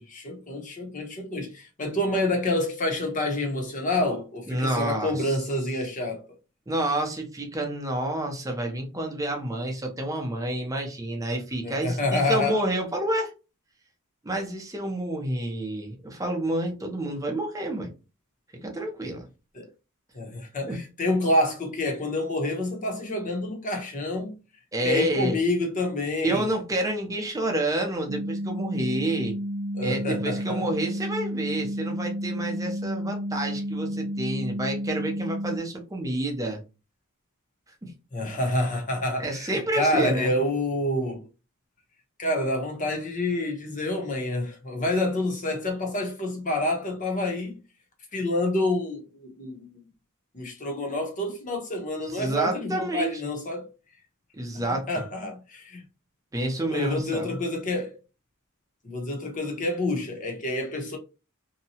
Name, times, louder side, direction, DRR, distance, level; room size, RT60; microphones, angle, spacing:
voice 1, 0.0-6.2 11.6-12.6 19.5-19.7 20.1-24.3 24.8-26.5 29.7-30.7 38.1-41.3 42.2-47.6 48.1-49.8 50.3-53.7 54.5-55.8 56.7-58.0 58.8-61.0, left 1 dB, 35° left, 0.8 m, -28 dB
voice 2, 4.5-5.4 6.7-13.3 14.2-17.9 18.6-19.3 20.7-20.8 24.7-25.4 26.2-29.4 29.8-36.6 37.8-37.9 39.2-40.4 52.1-53.1 54.3-54.9 56.3-57.4, right 1 dB, 15° right, 0.6 m, -29 dB
sound 1, 28.1-35.6, equal, 85° right, 0.4 m, -31 dB
2.7 x 2.2 x 2.7 m
head